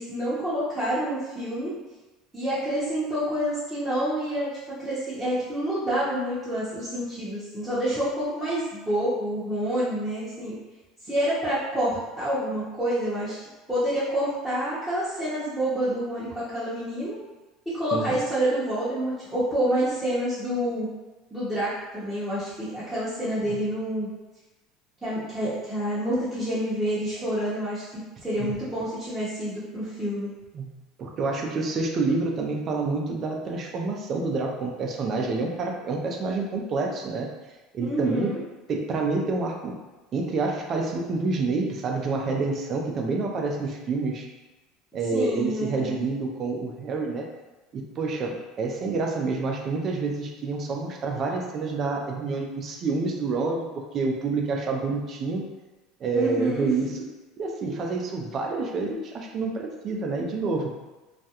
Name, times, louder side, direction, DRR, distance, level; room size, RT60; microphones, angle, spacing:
voice 1, 0.0-1.7 2.3-4.5 4.8-10.5 11.0-13.3 13.7-17.2 17.7-20.9 21.3-24.1 25.0-27.8 28.2-30.3 37.8-38.4 45.1-46.0 56.1-56.7 57.6-57.8, right 1 dB, 5° right, -14 dB, 0.8 m, -28 dB
voice 2, 31.0-37.3 37.7-38.3 38.7-39.7 40.1-44.3 44.9-47.3 47.7-55.4 56.0-56.9 57.4-60.7, right 3 dB, 40° right, 2 dB, 0.4 m, -28 dB
2.3 x 2.1 x 2.8 m, 1.2 s
supercardioid pair, 130°, 0 cm